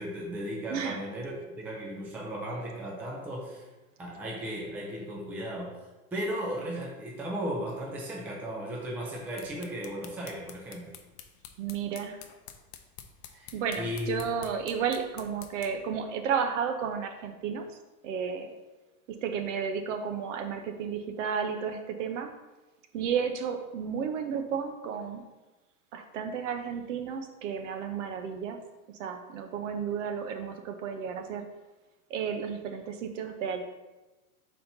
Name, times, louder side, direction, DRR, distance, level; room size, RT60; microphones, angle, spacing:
voice 1, 0.0-3.6 4.0-5.7 6.1-10.9 13.3-14.2, equal, 5° right, -3 dB, 0.5 m, -36 dB
voice 2, 0.7-1.0 11.6-12.2 13.5-17.6 18.0-18.5 19.2-22.3 22.9-25.2 25.9-28.6 29.0-31.5 32.1-33.6, right 7 dB, 55° right, 6 dB, 0.8 m, -32 dB
sound 1, 9.2-15.9, left 9 dB, 45° left, 0.7 m, -50 dB
4.3 x 4.3 x 5.3 m, 1.1 s
hypercardioid pair, 135°, 45 cm